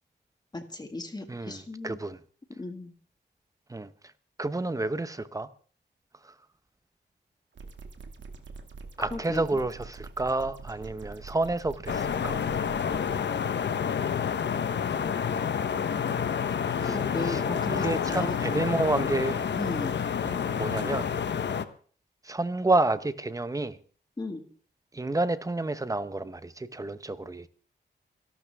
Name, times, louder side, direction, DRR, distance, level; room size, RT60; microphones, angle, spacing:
voice 1, 0.5-2.0 2.6-2.9 9.0-9.4 16.5-16.6 16.8-18.6 19.5-20.0 24.2-24.4, left 2 dB, 20° left, 1.9 m, -36 dB
voice 2, 1.3-2.2 3.7-3.9 4.4-5.5 6.2-6.3 9.0-12.4 16.8-17.4 17.7-19.5 20.2-21.1 22.2-23.8 24.9-27.5, right 2 dB, 20° right, 0.8 m, -30 dB
sound 1, 7.5-13.1, right 4 dB, 90° right, 2.2 m, -44 dB
sound 2, 11.9-21.6, left 7 dB, 75° left, 1.0 m, -29 dB
27.5 x 12.5 x 3.5 m
wide cardioid pair, 165°, 18 cm